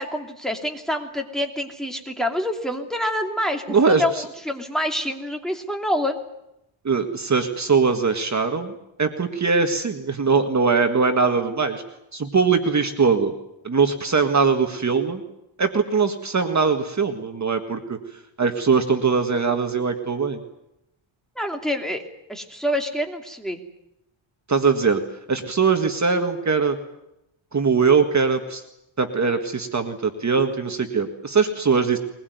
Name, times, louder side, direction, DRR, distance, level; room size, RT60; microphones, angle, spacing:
voice 1, 0.0-6.2 21.4-22.0 22.3-23.6, left 1 dB, ahead, 3 dB, 2.8 m, -27 dB
voice 2, 3.7-4.2 6.8-8.7 9.0-11.8 12.1-13.3 13.6-15.2 15.6-18.0 18.4-20.4 24.5-25.0 25.3-26.8 27.5-28.6 29.0-32.0, right 5 dB, 35° right, 6 dB, 1.8 m, -21 dB
22.0 x 21.0 x 9.4 m, 0.86 s
wide cardioid pair, 145°, 49 cm